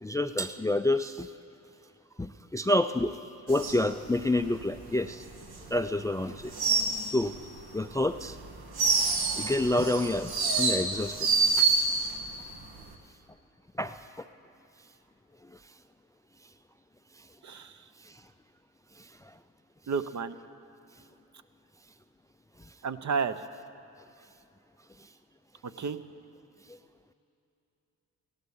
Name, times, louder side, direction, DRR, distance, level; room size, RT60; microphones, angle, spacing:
voice 1, 0.0-1.3 2.2-3.2 3.5-5.3 5.7-6.5 7.1-7.3 7.7-8.4 9.4-11.9 13.8-14.3 15.4-15.6 17.2-17.3 18.0-18.2 19.0-19.3 22.6-22.7 25.0-25.1 26.7-26.8, left 1 dB, 10° left, 11 dB, 0.4 m, -29 dB
sound 1, 3.5-6.0 6.3-7.6 7.9-12.2 12.5-12.9, right 4 dB, 75° right, 1.7 m, -27 dB
voice 2, 19.9-20.3 22.8-23.4 25.8-26.0, right 5 dB, 50° right, 11 dB, 0.8 m, -31 dB
16.0 x 11.5 x 7.2 m, 2.8 s
supercardioid pair, 60°, 37 cm